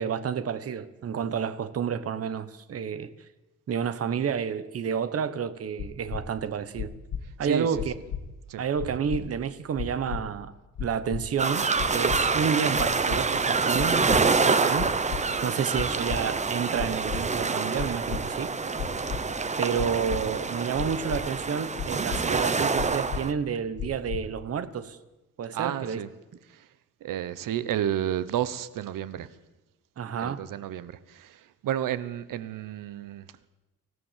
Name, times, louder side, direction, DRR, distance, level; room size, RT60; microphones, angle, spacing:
voice 1, 0.0-3.1 3.7-6.9 7.4-7.9 8.6-10.5 10.8-14.9 15.4-18.5 19.6-25.0 25.4-26.0 30.0-30.4, right 7 dB, 50° right, 1.1 m, -30 dB
sound 1, 5.8-6.2 6.7-7.2 7.7-8.2 8.7-9.2 9.7-10.2 10.7-11.2 11.7-12.2 12.7-13.2 13.7-14.2 14.7-15.2 15.7-16.2 16.7-17.2 17.7-18.2 18.7-19.2 19.7-20.2 20.7-21.2 21.7-22.2 22.7-23.2 23.7-24.2, left 9 dB, 85° left, 2.8 m, -33 dB
voice 2, 7.4-7.8 8.5-8.6 15.5-15.7 25.5-26.1 26.5-26.7 27.0-29.4 30.2-33.3, right 11 dB, 90° right, 1.1 m, -32 dB
sound 2, 11.4-23.3, right 4 dB, 20° right, 0.9 m, -26 dB
25.0 x 16.0 x 7.5 m
wide cardioid pair, 155°, 32 cm